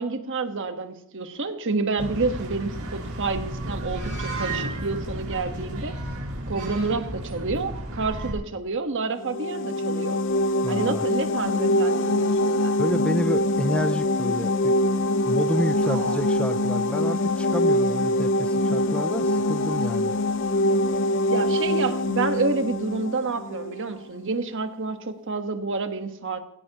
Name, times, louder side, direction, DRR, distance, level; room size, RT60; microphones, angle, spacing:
voice 1, 0.0-6.0 6.5-10.2 10.7-12.7 15.8-16.2 21.3-26.4, right 3 dB, 60° right, 7 dB, 1.3 m, -29 dB
sound 1, 2.0-8.3, right 1 dB, 80° right, 5.1 m, -32 dB
sound 2, 9.2-23.8, left 1 dB, 60° left, 0.7 m, -24 dB
voice 2, 10.6-11.0 12.8-14.8 15.2-20.1, left 1 dB, 5° left, 11 dB, 0.4 m, -29 dB
18.5 x 17.0 x 3.0 m, 0.87 s
head